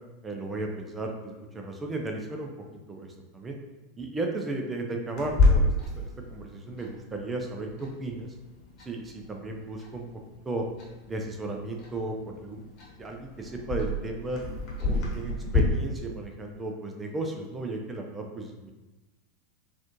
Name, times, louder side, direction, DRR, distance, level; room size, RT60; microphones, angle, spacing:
voice 1, 0.2-2.5 2.9-3.1 3.3-3.6 4.0-8.3 8.9-10.1 10.4-10.6 11.1-12.6 13.0-14.4 14.8-18.7, right 2 dB, 15° right, 2 dB, 0.4 m, -35 dB
Clock, 5.2-15.6, left 2 dB, 40° left, 1.1 m, -30 dB
4.1 x 2.4 x 2.9 m, 1.1 s
figure-of-eight pair, 85°, 0 cm